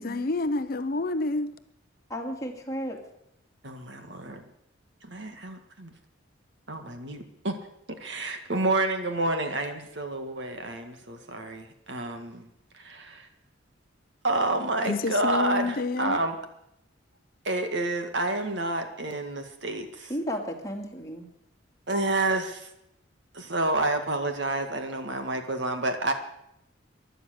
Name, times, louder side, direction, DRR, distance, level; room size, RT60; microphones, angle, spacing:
voice 1, 0.0-1.6 14.8-16.2, left 3 dB, 45° left, 11 dB, 0.6 m, -28 dB
voice 2, 2.1-3.0 20.1-21.3, equal, 15° left, 1 dB, 2.3 m, -33 dB
voice 3, 3.6-4.4 5.0-5.9 6.7-7.6 7.9-12.5 12.7-13.3 14.2-16.4 17.4-20.1 21.9-22.7 23.3-26.1, right 2 dB, 60° right, 6 dB, 1.9 m, -29 dB
16.0 x 11.5 x 6.5 m, 0.78 s
head